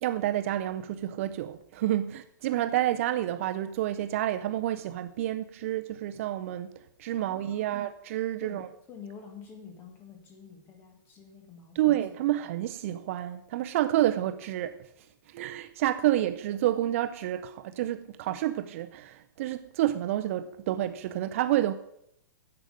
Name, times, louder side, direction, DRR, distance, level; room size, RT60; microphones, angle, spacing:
voice 1, 0.0-8.7 11.8-14.8 15.3-21.7, right 13 dB, 40° right, 0.4 m, -29 dB
voice 2, 7.2-7.8 8.4-12.0, left 6 dB, 20° left, 1.8 m, -48 dB
10.5 x 7.8 x 5.0 m
hypercardioid pair, 165°, 11 cm